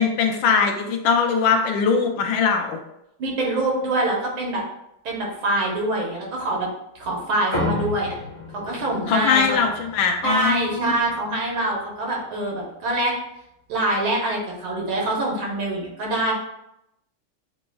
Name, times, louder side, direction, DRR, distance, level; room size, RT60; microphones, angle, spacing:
voice 1, 0.0-2.8 9.1-10.9, left 6 dB, 75° left, 4 dB, 1.3 m, -21 dB
voice 2, 3.2-4.6 5.0-6.7 7.0-8.2 8.5-9.6 10.2-13.1 13.7-16.3, right 2 dB, 75° right, -2 dB, 1.9 m, -24 dB
sound 1, 7.5-12.3, left 2 dB, 25° left, 0.7 m, -33 dB
7.2 x 3.0 x 2.3 m, 0.83 s
omnidirectional pair, 2.3 m